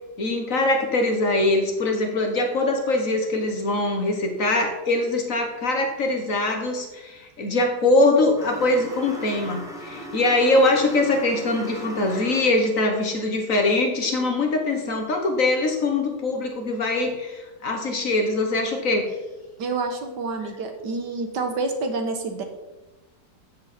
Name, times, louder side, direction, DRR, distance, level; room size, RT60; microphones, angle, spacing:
voice 1, 0.2-19.1, left 2 dB, 50° left, 4 dB, 1.7 m, -22 dB
sound 1, 8.4-12.8, equal, ahead, 1.7 m, -38 dB
voice 2, 19.6-22.4, right 3 dB, 70° right, 5 dB, 1.9 m, -28 dB
12.5 x 7.6 x 4.3 m, 1.1 s
omnidirectional pair, 2.0 m